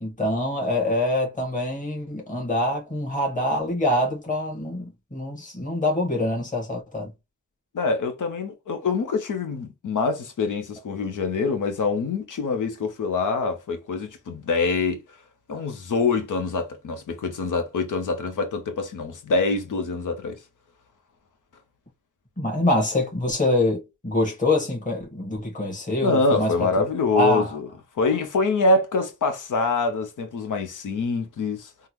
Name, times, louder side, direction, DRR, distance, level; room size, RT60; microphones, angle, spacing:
voice 1, 0.0-7.1 22.4-26.7 27.1-27.5, left 1 dB, 25° left, 1.4 m, -25 dB
voice 2, 7.7-15.0 15.5-20.4 26.0-27.7 28.0-31.7, left 3 dB, 85° left, 0.8 m, -25 dB
3.7 x 2.1 x 3.0 m
cardioid pair, 55°, 30 cm